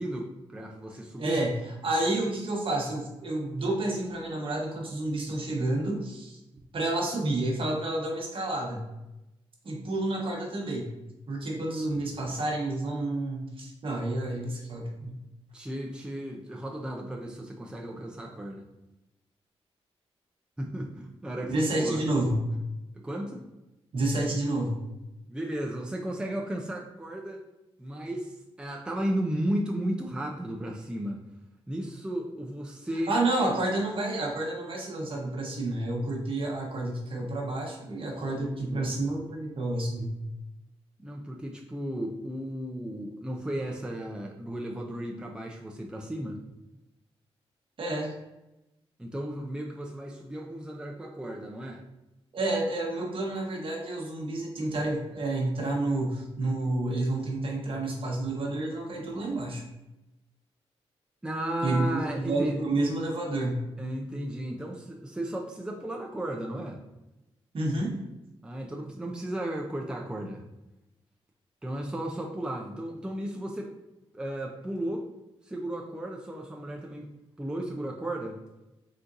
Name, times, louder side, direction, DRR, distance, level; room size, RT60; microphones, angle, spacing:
voice 1, 0.0-1.4 15.5-18.7 20.6-22.0 23.0-23.4 25.3-27.4 27.8-31.2 31.7-33.1 41.0-46.4 49.0-51.8 61.2-62.6 63.8-66.8 68.4-70.4 71.6-73.7 74.1-75.0 75.4-77.1 77.4-78.4, right 1 dB, 10° right, 0 dB, 0.6 m, -34 dB
voice 2, 1.2-6.4 6.7-8.8 9.6-10.9 11.3-15.2 21.5-22.4 23.9-24.8 33.1-40.1 47.8-48.1 52.3-59.6 61.6-63.6 67.5-68.0, right 2 dB, 55° right, -1 dB, 1.1 m, -29 dB
4.3 x 3.7 x 2.6 m, 0.95 s
cardioid pair, 75°, 11 cm